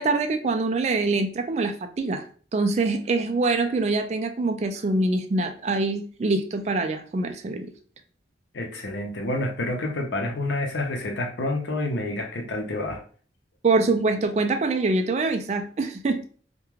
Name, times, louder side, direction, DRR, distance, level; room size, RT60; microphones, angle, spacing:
voice 1, 0.0-2.3 2.5-7.7 13.6-16.2, right 3 dB, 40° right, 6 dB, 0.3 m, -24 dB
voice 2, 8.5-13.0, left 2 dB, 90° left, 3 dB, 0.6 m, -28 dB
2.3 x 2.2 x 3.0 m, 0.43 s
head